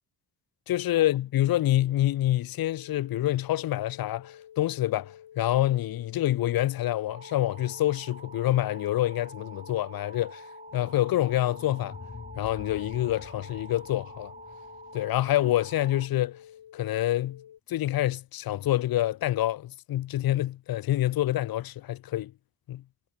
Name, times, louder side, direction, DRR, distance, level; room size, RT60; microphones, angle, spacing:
voice 1, 0.7-10.4 10.7-12.0 12.4-14.3 14.9-16.4 16.7-17.4 17.7-22.3 22.7-22.8, left 14 dB, 60° left, 0.5 m, -27 dB
sound 1, 2.6-17.6, left 10 dB, 85° left, 3.6 m, -50 dB
sound 2, 7.1-16.1, right 3 dB, 20° right, 1.2 m, -48 dB
sound 3, 10.7-15.8, left 4 dB, 25° left, 1.4 m, -48 dB
wide cardioid pair, 125°, 41 cm